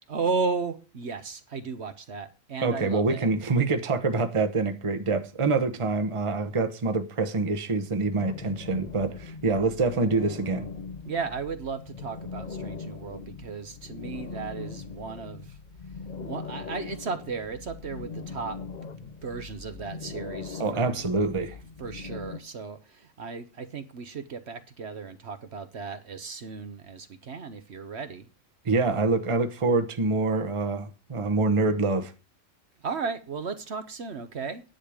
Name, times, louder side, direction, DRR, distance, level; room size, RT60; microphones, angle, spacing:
voice 1, 0.1-3.3 11.0-15.6 16.2-18.6 19.0-21.0 21.8-28.3 32.8-34.6, right 5 dB, 55° right, 1.2 m, -35 dB
voice 2, 2.6-10.7 20.6-21.6 28.6-32.1, right 3 dB, 25° right, 1.0 m, -26 dB
sound 1, 8.1-22.4, left 5 dB, 40° left, 0.9 m, -40 dB
10.5 x 8.6 x 5.0 m
omnidirectional pair, 1.4 m